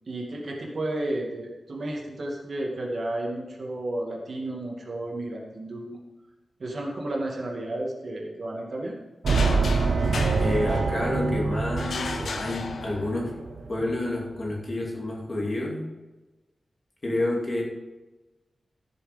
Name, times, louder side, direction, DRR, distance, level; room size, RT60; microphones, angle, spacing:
voice 1, 0.1-6.0 6.6-9.0, right 1 dB, 50° right, -1 dB, 2.2 m, -32 dB
sound 1, 9.2-14.0, right 4 dB, 70° right, 0.9 m, -26 dB
sound 2, 9.3-11.2 11.8-13.3, left 4 dB, 75° left, 1.0 m, -35 dB
voice 2, 10.4-13.4 13.7-15.9 17.0-17.6, left 1 dB, 35° left, -2 dB, 2.6 m, -29 dB
14.5 x 6.9 x 5.2 m, 1.1 s
wide cardioid pair, 170°, 0 cm